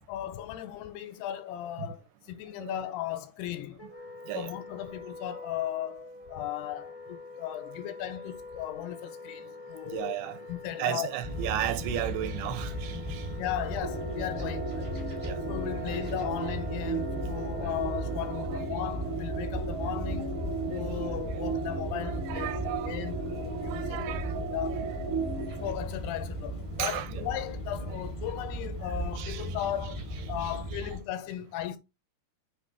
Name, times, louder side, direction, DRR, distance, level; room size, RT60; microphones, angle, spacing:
voice 1, 0.0-3.8 4.3-10.2 10.5-11.1 13.4-15.1 15.5-20.4 20.7-22.5 22.8-24.0 24.5-24.8 25.6-30.0 30.3-31.8, left 12 dB, 80° left, 2.5 m, -36 dB
Wind instrument woodwind instrument, 3.8-18.7, left 2 dB, 20° left, 0.9 m, -46 dB
voice 2, 9.9-10.4 10.8-13.3 15.2-15.4 15.9-16.0 17.6-17.8 18.3-18.7 20.7-21.4 22.0-24.4 24.7-24.8 26.8-27.2 28.8-29.9 30.4-31.0, right 13 dB, 80° right, 2.5 m, -36 dB
sound 1, 11.2-31.0, equal, 25° right, 0.7 m, -36 dB
sound 2, 13.8-25.7, right 4 dB, 60° right, 2.4 m, -36 dB
7.6 x 3.8 x 3.3 m
omnidirectional pair, 4.8 m